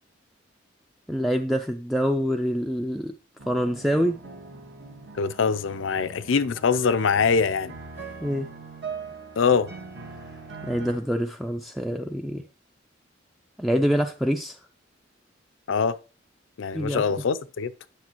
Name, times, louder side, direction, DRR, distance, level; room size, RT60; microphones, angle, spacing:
voice 1, 1.1-3.1 3.5-4.2 8.2-8.5 10.6-12.4 13.6-14.6 16.7-17.0, equal, ahead, 0.4 m, -25 dB
sound 1, 3.4-11.0, right 4 dB, 60° right, 1.5 m, -41 dB
voice 2, 5.1-7.7 9.4-9.7 15.7-16.0 16.6-17.7, left 5 dB, 90° left, 0.5 m, -23 dB
9.5 x 6.8 x 3.0 m
head